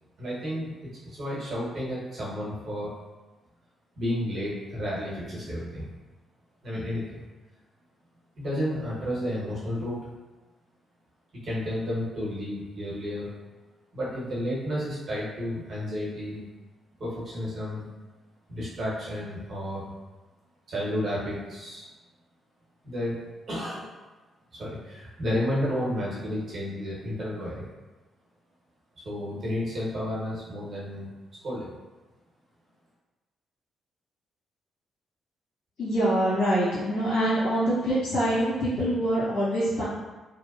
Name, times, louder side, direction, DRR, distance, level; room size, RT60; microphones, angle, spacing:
voice 1, 0.2-0.7 1.0-2.9 4.0-5.9 6.6-7.2 8.4-10.0 11.4-13.3 13.9-16.4 17.0-17.9 18.5-19.9 20.7-21.9 22.8-23.2 23.5-23.9 24.6-27.7 29.0-31.1 31.4-31.8, equal, 55° right, -7 dB, 0.9 m, -31 dB
voice 2, 35.8-39.8, right 1 dB, 80° left, -12 dB, 1.2 m, -25 dB
2.6 x 2.0 x 2.3 m, 1.2 s
cardioid pair, 85°, 0 cm